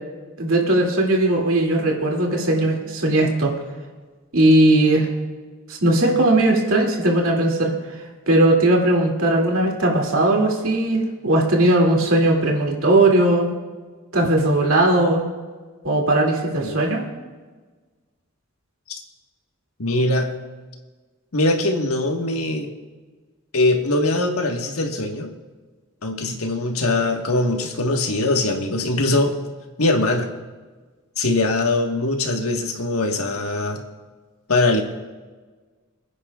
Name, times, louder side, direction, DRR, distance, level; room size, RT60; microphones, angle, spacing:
voice 1, 0.4-3.5 4.3-5.1 5.7-7.7 8.3-13.5 14.1-15.2 15.8-17.0, right 1 dB, 65° right, 0 dB, 2.6 m, -18 dB
voice 2, 19.8-20.3 21.3-22.7 23.5-25.3 26.0-29.3 29.8-30.3 31.2-33.8 34.5-34.8, left 2 dB, 80° left, 3 dB, 1.5 m, -21 dB
27.5 x 9.9 x 2.4 m, 1.4 s
head